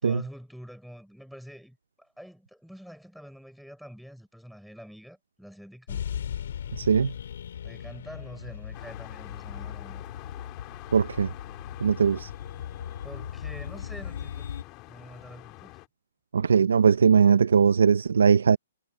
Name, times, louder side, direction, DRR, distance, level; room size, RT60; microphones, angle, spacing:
voice 1, 0.0-6.0 7.6-10.0 13.0-14.6 14.9-15.7, equal, ahead, 4.7 m, -46 dB
sound 1, 5.9-14.6, left 9 dB, 55° left, 2.3 m, -38 dB
voice 2, 6.8-7.1 10.9-11.3 11.8-12.3 16.3-18.6, right 6 dB, 85° right, 0.7 m, -20 dB
sound 2, 8.7-15.9, left 20 dB, 20° left, 2.3 m, -47 dB
hypercardioid pair, 170°, 0 cm